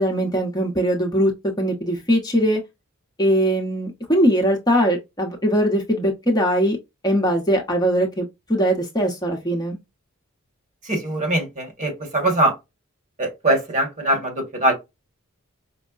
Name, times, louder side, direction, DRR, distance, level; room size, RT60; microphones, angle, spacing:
voice 1, 0.0-1.3 1.6-2.6 3.2-6.8 7.0-9.8, equal, 20° left, 0.8 m, -21 dB
voice 2, 10.8-12.6 13.2-14.7, right 1 dB, 35° right, 1.5 m, -22 dB
5.2 x 2.1 x 2.4 m
head